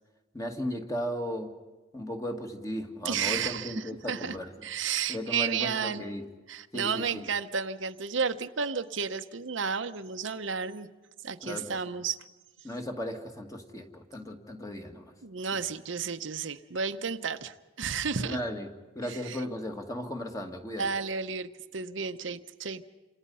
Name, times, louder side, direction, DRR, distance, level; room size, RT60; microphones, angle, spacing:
voice 1, 0.3-1.6 1.9-4.7 5.1-6.2 6.7-7.2 11.4-12.0 12.6-15.1 18.2-21.0, equal, 15° left, 4 dB, 2.1 m, -36 dB
voice 2, 3.0-4.4 4.6-6.0 6.5-10.9 11.2-12.2 15.2-18.4 19.1-19.4 20.8-22.9, right 6 dB, 75° right, 8 dB, 0.9 m, -32 dB
29.5 x 26.5 x 5.6 m, 1.2 s
head